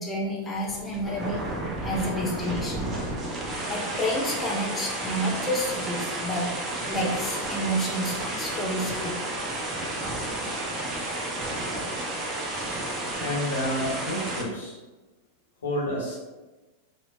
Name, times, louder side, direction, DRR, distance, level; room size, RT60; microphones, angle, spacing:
voice 1, 0.0-1.4 1.8-2.9 3.7-6.5 6.9-9.2, equal, 15° left, -3 dB, 0.9 m, -29 dB
sound 1, 0.6-14.4, right 1 dB, 25° right, 0.7 m, -32 dB
voice 2, 13.2-14.8 15.6-16.2, left 1 dB, 65° left, -5 dB, 1.4 m, -29 dB
4.3 x 2.8 x 2.7 m, 1.2 s
figure-of-eight pair, 90°, 0 cm